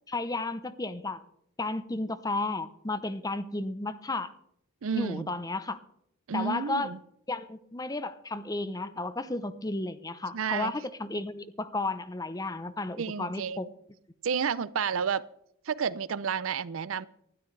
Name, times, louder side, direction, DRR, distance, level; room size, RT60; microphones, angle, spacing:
voice 1, 0.1-1.2 1.6-4.3 4.9-5.8 6.3-6.9 7.3-13.7, left 2 dB, 20° left, 13 dB, 0.7 m, -33 dB
voice 2, 4.8-5.3 6.3-7.0 10.3-10.7 13.0-13.7 14.2-15.3 15.7-17.1, right 6 dB, 75° right, 19 dB, 0.5 m, -31 dB
19.5 x 12.5 x 3.3 m, 0.73 s
head